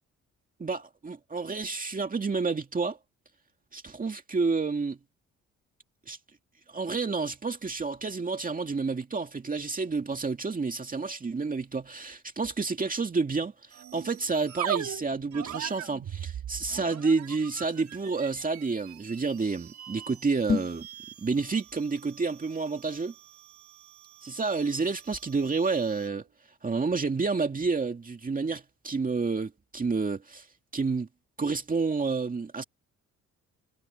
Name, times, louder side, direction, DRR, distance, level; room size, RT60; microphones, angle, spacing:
voice 1, 0.6-3.0 3.7-5.0 6.1-6.2 6.7-20.9 21.2-23.1 24.2-26.3 26.6-30.5 30.7-31.1 31.4-32.6, right 4 dB, 25° right, 2.2 m, -29 dB
sound 1, 13.7-26.2, right 11 dB, 70° right, 4.6 m, -41 dB
sound 2, 20.4-20.9, left 5 dB, 25° left, 2.3 m, -28 dB
cardioid pair, 90°, 30 cm